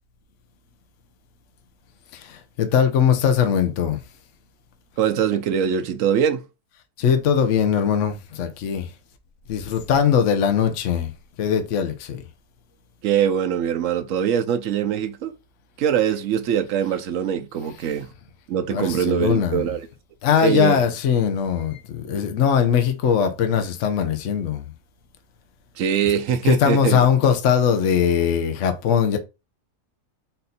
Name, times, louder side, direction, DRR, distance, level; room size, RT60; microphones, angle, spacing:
voice 1, 2.1-4.0 7.0-8.9 9.5-11.1 11.4-12.2 18.7-19.6 20.2-24.7 26.5-29.2, left 8 dB, 60° left, 1.0 m, -20 dB
voice 2, 5.0-6.4 13.0-15.3 15.8-18.1 18.5-19.9 20.4-20.8 25.8-27.0, right 8 dB, 65° right, 0.9 m, -22 dB
4.2 x 2.6 x 4.0 m
omnidirectional pair, 1.6 m